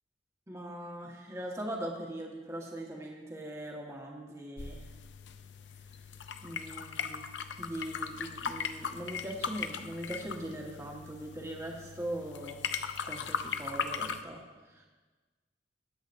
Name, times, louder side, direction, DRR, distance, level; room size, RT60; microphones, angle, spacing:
voice 1, 0.5-4.9 6.4-7.2 7.6-12.6 13.1-14.4 14.7-14.9, right 1 dB, 15° right, -1 dB, 1.4 m, -40 dB
sound 1, 4.6-14.2, left 6 dB, 85° left, 0.6 m, -38 dB
19.5 x 8.2 x 2.6 m, 1.3 s
head